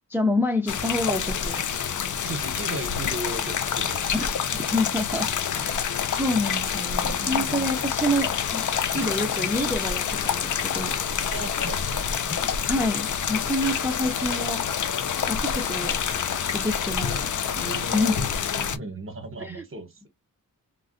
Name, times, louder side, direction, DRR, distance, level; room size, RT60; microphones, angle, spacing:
voice 1, 0.1-1.6 4.7-5.3 5.6-5.8 6.1-8.6 8.9-10.9 12.6-14.6 15.3-16.0 16.4-17.3 17.6-18.1 19.4-19.6, left 1 dB, 5° right, 0.5 m, -27 dB
sound 1, 0.7-18.8, left 7 dB, 60° left, 0.4 m, -27 dB
sound 2, 1.4-18.3, left 1 dB, 35° left, 1.3 m, -45 dB
voice 2, 2.2-4.3 7.0-7.7 11.3-12.1 17.6-20.1, right 2 dB, 40° right, 1.0 m, -36 dB
3.7 x 2.1 x 2.5 m
wide cardioid pair, 105°, 34 cm